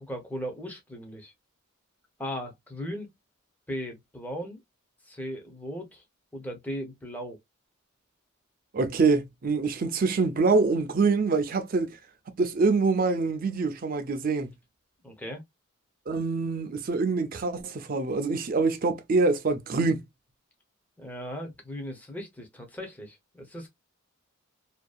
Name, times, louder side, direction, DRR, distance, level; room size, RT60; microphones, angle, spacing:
voice 1, 0.1-1.3 2.2-3.1 3.7-4.6 5.0-6.0 6.3-7.4 15.0-15.4 21.0-23.7, equal, 10° left, 0.6 m, -37 dB
voice 2, 8.7-12.0 12.4-14.5 16.1-20.0, right 4 dB, 40° right, 0.4 m, -25 dB
2.6 x 2.2 x 2.2 m
head